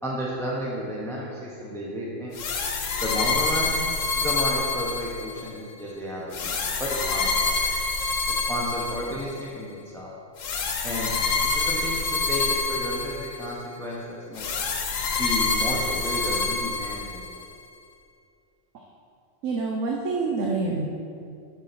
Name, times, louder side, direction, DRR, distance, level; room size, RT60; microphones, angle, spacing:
voice 1, 0.0-2.4 3.0-3.8 4.1-7.5 8.3-10.1 10.8-11.1 11.4-14.4 15.2-17.3, equal, ahead, -5 dB, 0.8 m, -32 dB
sound 1, 2.3-5.5 6.3-9.4 10.4-13.5 14.4-17.5, left 4 dB, 90° left, 1.2 m, -27 dB
voice 2, 19.4-20.9, right 3 dB, 80° right, -1 dB, 1.1 m, -26 dB
7.3 x 6.4 x 4.1 m, 2.4 s
omnidirectional pair, 1.3 m